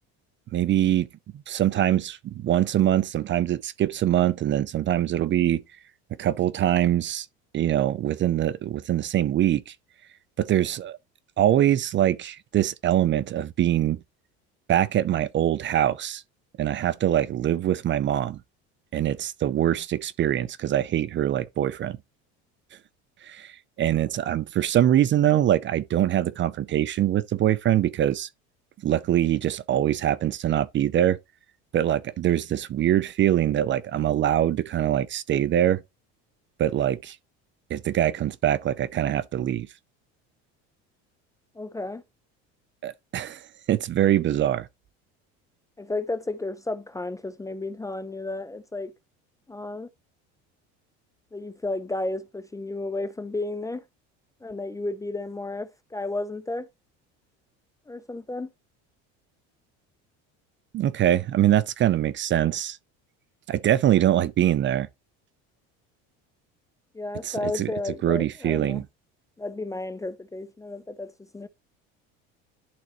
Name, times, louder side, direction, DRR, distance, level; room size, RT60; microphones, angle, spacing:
voice 1, 0.5-1.1 1.5-5.6 6.2-7.3 7.5-9.7 10.4-11.0 11.4-14.0 14.7-16.2 16.6-18.4 18.9-22.0 23.2-23.5 23.8-28.3 28.8-31.2 31.7-35.8 36.6-37.2 37.7-39.7 42.8-43.4 43.7-44.7 60.7-62.8 63.5-64.9 67.2-67.7 68.0-68.8, right 11 dB, 35° right, 0.5 m, -23 dB
voice 2, 41.6-42.0 45.8-48.9 49.5-49.9 51.3-53.8 54.4-56.7 57.9-58.5 66.9-68.8 69.4-71.5, left 2 dB, 10° left, 0.5 m, -32 dB
11.5 x 3.8 x 3.0 m
supercardioid pair, 105°, 32 cm